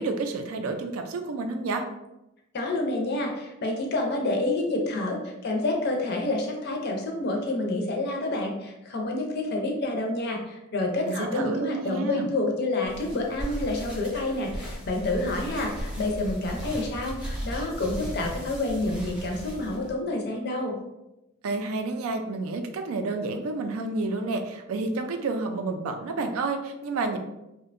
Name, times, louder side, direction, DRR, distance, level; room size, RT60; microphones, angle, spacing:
voice 1, 0.0-1.8 11.1-12.3 21.4-27.2, right 3 dB, 75° right, 5 dB, 0.3 m, -30 dB
voice 2, 2.5-20.8, left 2 dB, 50° left, 2 dB, 0.4 m, -28 dB
sound 1, 12.8-19.9, equal, 5° right, 0.6 m, -36 dB
2.6 x 2.1 x 2.4 m, 0.91 s
head